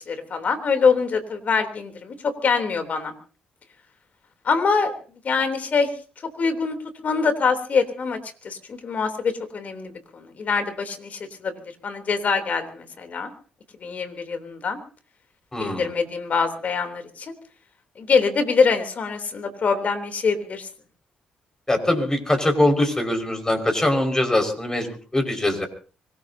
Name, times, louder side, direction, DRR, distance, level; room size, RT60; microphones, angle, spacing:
voice 1, 0.0-3.1 4.4-4.9 5.2-5.9 6.4-6.8 7.0-8.2 8.4-11.5 11.8-13.3 13.8-14.8 15.6-17.3 17.9-20.7, left 5 dB, 55° left, 7 dB, 3.4 m, -24 dB
voice 2, 15.5-15.9 21.7-25.7, left 1 dB, 20° left, 5 dB, 5.5 m, -22 dB
25.0 x 19.0 x 2.8 m, 0.38 s
hypercardioid pair, 50°, 3 cm